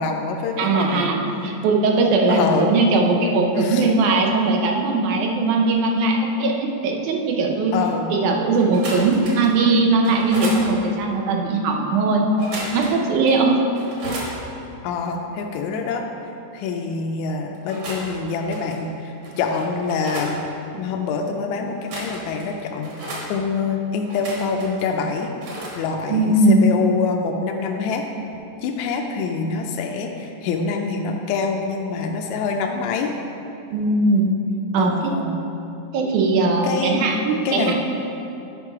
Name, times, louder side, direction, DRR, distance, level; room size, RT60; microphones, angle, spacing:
voice 1, 0.0-1.1 2.3-2.7 3.5-4.0 7.7-8.1 14.8-16.0 16.5-20.4 20.8-25.3 25.8-28.1 28.6-33.1 34.8-35.4 36.6-37.0 37.5-37.7, left 5 dB, 80° left, 2 dB, 1.9 m, -25 dB
voice 2, 0.6-7.7 8.1-12.3 12.7-13.6 26.1-26.6 33.7-34.3 34.7-35.1 35.9-37.7, right 3 dB, 90° right, 1 dB, 2.3 m, -19 dB
sound 1, 8.5-9.5 10.0-10.6 12.3-13.0 13.3-13.4 13.7-14.3 17.5-18.1 18.5-18.8 19.2-20.3 21.7-22.4 22.8-23.3 24.0-24.8 25.4-25.8, right 1 dB, 65° right, 2.6 m, -33 dB
10.5 x 5.4 x 4.7 m, 2.8 s
omnidirectional pair, 3.4 m